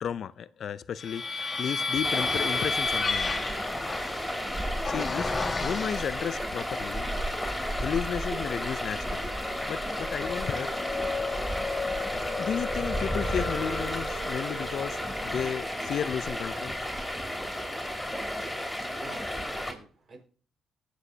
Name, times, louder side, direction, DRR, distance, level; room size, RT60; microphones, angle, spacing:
voice 1, 0.0-3.3 4.3-4.4 4.8-7.1 7.8-9.3 9.7-10.7 12.1-16.8, left 8 dB, 60° left, 0.5 m, -33 dB
sound 1, 1.0-6.5 7.0-7.8 8.3-17.5, left 3 dB, 30° left, 1.8 m, -34 dB
Stream, 2.0-19.7, left 1 dB, 10° left, 3.4 m, -33 dB
sound 2, 2.8-17.2, right 1 dB, 5° right, 0.7 m, -41 dB
voice 2, 18.6-20.2, right 3 dB, 50° right, 5.0 m, -49 dB
20.0 x 7.8 x 2.8 m
cardioid pair, 90°, 0 cm